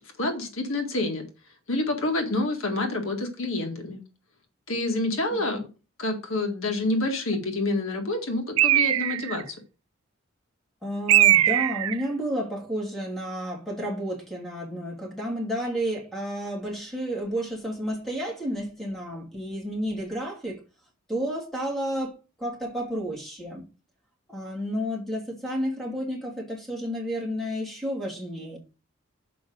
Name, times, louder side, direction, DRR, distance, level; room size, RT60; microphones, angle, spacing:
voice 1, 0.2-1.3 1.7-4.0 4.7-5.7 6.0-9.6, left 2 dB, 70° left, 1.9 m, -28 dB
voice 2, 5.3-5.6 10.8-20.6 21.1-23.7 24.3-28.6, equal, ahead, 2.6 m, -31 dB
Bird, 8.6-9.4 11.1-12.0, right 13 dB, 80° right, 0.4 m, -20 dB
6.9 x 5.1 x 6.4 m
head